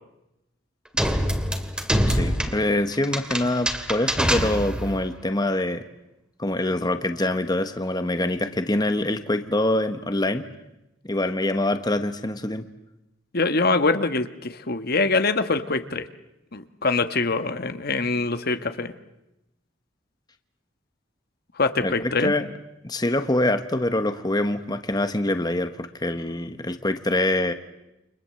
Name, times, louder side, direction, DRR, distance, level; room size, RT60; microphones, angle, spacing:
sound 1, 1.0-5.1, equal, 5° right, 2.3 m, -25 dB
voice 1, 1.9-5.8 6.4-10.4 11.1-12.6 21.8-22.5 22.8-27.5, left 1 dB, 20° left, 8 dB, 1.3 m, -25 dB
voice 2, 13.3-16.1 16.5-18.9 21.6-22.3, left 3 dB, 55° left, 9 dB, 1.5 m, -24 dB
29.5 x 25.5 x 7.7 m, 0.90 s
head